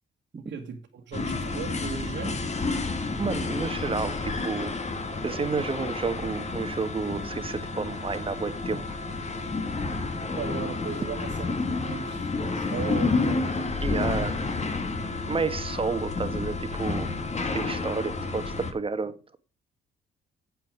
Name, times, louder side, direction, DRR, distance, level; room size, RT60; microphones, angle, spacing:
voice 1, 0.4-2.4 10.4-13.5 14.0-15.1, right 6 dB, 65° right, 1.7 m, -37 dB
sound 1, 1.1-18.7, left 3 dB, 35° left, 2.0 m, -30 dB
voice 2, 3.2-4.7 5.2-9.0 13.8-14.3 15.3-17.1 17.5-19.4, right 4 dB, 25° right, 1.4 m, -31 dB
9.3 x 7.7 x 5.0 m
cardioid pair, 90°, 20 cm